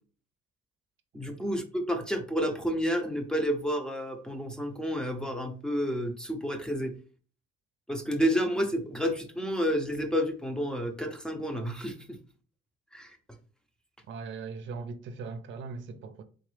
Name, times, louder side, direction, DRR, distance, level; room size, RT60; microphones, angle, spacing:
voice 1, 1.1-6.9 7.9-12.2 12.9-13.2, equal, 5° left, 0.8 m, -30 dB
voice 2, 14.1-16.2, right 4 dB, 70° right, 0.6 m, -39 dB
3.8 x 3.5 x 3.3 m
cardioid pair, 90°, 20 cm